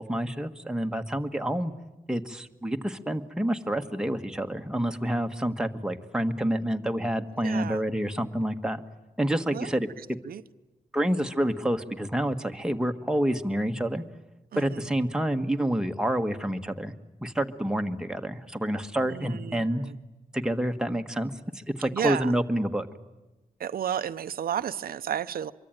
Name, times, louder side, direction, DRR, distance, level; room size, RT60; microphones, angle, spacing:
voice 1, 0.0-1.7 2.1-8.8 9.2-10.2 10.9-14.0 14.6-16.9 17.2-19.8 20.3-22.9, right 1 dB, 5° right, 5 dB, 1.5 m, -28 dB
voice 2, 7.4-7.8 9.5-9.7 10.2-10.4 14.5-14.9 19.0-20.0 21.9-22.3 23.6-25.5, right 9 dB, 90° right, 11 dB, 0.8 m, -32 dB
24.5 x 23.5 x 9.1 m, 1.1 s
wide cardioid pair, 115°, 15 cm